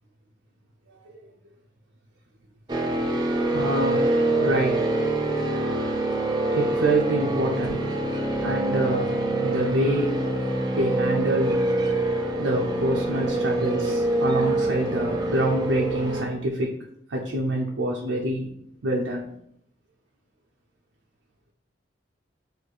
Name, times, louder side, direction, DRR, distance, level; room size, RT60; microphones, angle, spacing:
sound 1, 2.7-16.3, right 2 dB, 25° right, 0.5 m, -25 dB
voice 1, 3.3-4.9 6.5-7.9 8.4-9.1 9.4-10.2 10.7-11.6 12.4-16.8 17.1-18.5 18.8-19.3, right 1 dB, 90° right, -2 dB, 0.5 m, -26 dB
3.2 x 2.6 x 4.0 m, 0.71 s
head